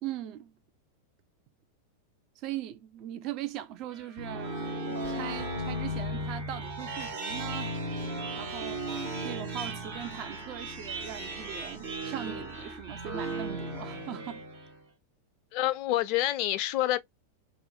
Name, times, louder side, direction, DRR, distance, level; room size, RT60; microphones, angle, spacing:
voice 1, 0.0-0.5 2.4-7.8 8.4-8.8 9.2-14.5, right 11 dB, 40° right, 0.4 m, -40 dB
sound 1, 3.9-14.8, right 1 dB, 55° right, 1.0 m, -36 dB
voice 2, 15.5-17.0, left 14 dB, 45° left, 0.3 m, -27 dB
2.4 x 2.1 x 2.6 m
figure-of-eight pair, 90°, 0 cm